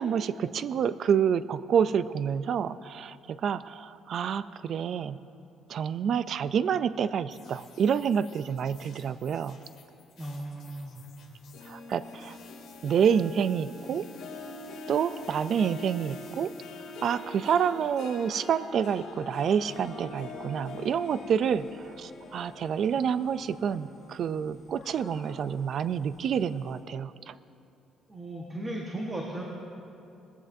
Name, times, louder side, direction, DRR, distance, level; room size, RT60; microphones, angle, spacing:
voice 1, 0.0-5.2 5.7-9.6 11.7-12.4 12.8-14.1 14.9-16.5 17.0-27.4, right 7 dB, 50° right, 15 dB, 0.3 m, -28 dB
sound 1, 7.3-18.7, left 6 dB, 60° left, 2.1 m, -56 dB
voice 2, 10.2-11.0 28.1-29.4, right 1 dB, 20° right, -2 dB, 1.3 m, -36 dB
Harp, 11.5-24.3 24.7-25.1 25.6-25.7, left 2 dB, 85° left, 2.0 m, -44 dB
sound 2, 18.5-26.8, left 2 dB, 45° left, 3.3 m, -50 dB
20.0 x 15.0 x 2.7 m, 2.6 s
cardioid pair, 160°, 0 cm